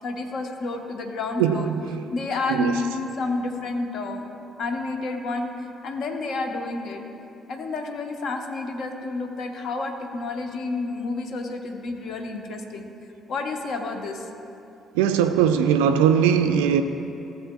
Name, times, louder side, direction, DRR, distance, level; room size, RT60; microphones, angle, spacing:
voice 1, 0.0-1.7 2.1-4.3 4.6-5.5 5.8-7.0 7.5-12.9 13.3-14.3, left 3 dB, 60° left, 4 dB, 0.9 m, -30 dB
voice 2, 1.4-2.1 2.5-2.7 14.9-16.8, right 8 dB, 75° right, 8 dB, 0.3 m, -20 dB
15.0 x 7.3 x 2.3 m, 2.8 s
figure-of-eight pair, 45°, 0 cm